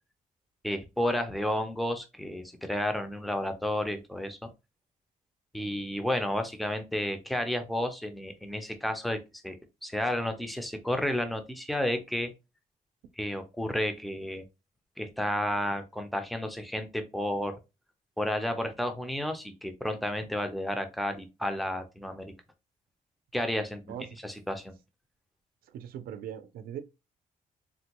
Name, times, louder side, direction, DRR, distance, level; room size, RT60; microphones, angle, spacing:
voice 1, 0.6-4.5 5.5-9.2 9.4-9.5 9.8-12.3 13.2-14.4 15.0-17.6 18.2-22.3 23.3-23.8 24.2-24.7, left 1 dB, ahead, 0.4 m, -31 dB
voice 2, 23.9-24.2 25.7-26.8, right 9 dB, 85° right, 0.4 m, -40 dB
3.4 x 2.2 x 2.8 m
cardioid pair, 165°, 15 cm